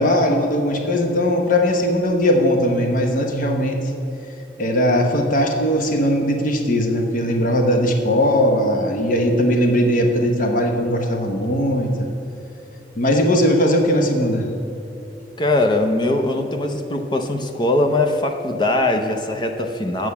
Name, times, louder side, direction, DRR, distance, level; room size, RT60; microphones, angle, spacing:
voice 1, 0.0-3.8 4.6-12.1 13.0-14.5, equal, 45° left, 3 dB, 0.9 m, -19 dB
voice 2, 15.4-20.1, left 2 dB, 25° left, 5 dB, 0.6 m, -21 dB
8.5 x 6.1 x 7.0 m, 2.8 s
head